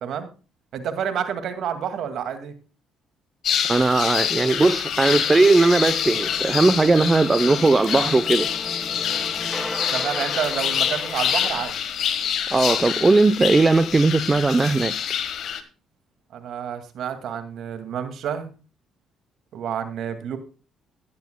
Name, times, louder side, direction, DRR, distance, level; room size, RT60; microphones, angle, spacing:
voice 1, 0.0-0.3 0.7-2.5 9.9-11.7 16.3-18.5 19.5-20.4, right 8 dB, 70° right, 2.1 m, -29 dB
sound 1, 3.4-15.6, left 9 dB, 65° left, 1.4 m, -26 dB
voice 2, 3.7-8.5 12.5-14.9, right 3 dB, 25° right, 0.6 m, -18 dB
sound 2, 5.1-11.6, equal, 5° left, 1.2 m, -36 dB
15.0 x 10.5 x 2.2 m
cardioid pair, 80°, 0 cm